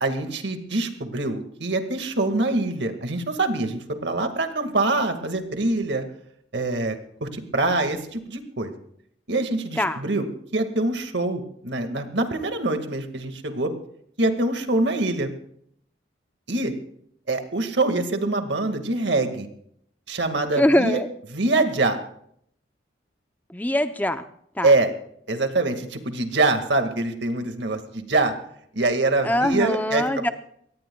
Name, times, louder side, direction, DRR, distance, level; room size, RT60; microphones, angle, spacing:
voice 1, 0.0-6.0 6.5-8.7 9.3-10.3 10.5-13.7 14.2-15.3 16.5-16.7 17.3-19.5 20.1-21.0 21.3-22.0 24.6-24.9 25.3-28.3 28.8-30.3, right 2 dB, 75° right, 7 dB, 1.9 m, -24 dB
voice 2, 20.6-21.1 23.5-24.2 24.6-24.7 29.2-30.3, left 1 dB, 10° left, 9 dB, 0.6 m, -22 dB
24.0 x 18.5 x 2.3 m, 0.68 s
head